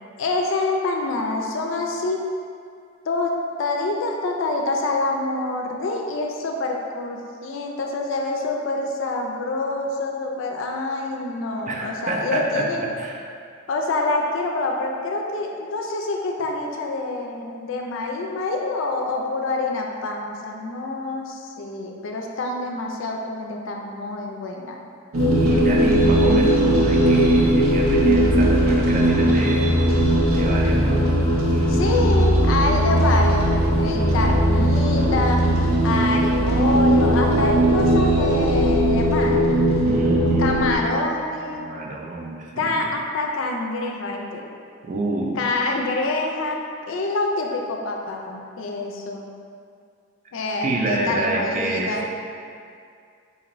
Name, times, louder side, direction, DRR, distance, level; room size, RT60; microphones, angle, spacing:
voice 1, 0.2-2.2 3.1-3.3 3.6-12.8 13.7-24.8 31.7-35.4 35.8-39.4 40.4-41.6 42.6-44.4 45.4-46.6 46.9-49.3 50.3-52.1, left 2 dB, 65° left, 1 dB, 0.4 m, -26 dB
voice 2, 11.7-13.2 25.3-29.7 30.3-31.1 31.5-31.7 39.8-40.6 41.5-42.8 44.8-45.4 50.6-52.1, right 2 dB, 35° right, -1 dB, 0.4 m, -28 dB
sound 1, 25.1-40.8, right 1 dB, 85° right, 0.7 m, -18 dB
4.0 x 2.5 x 3.0 m, 2.3 s
head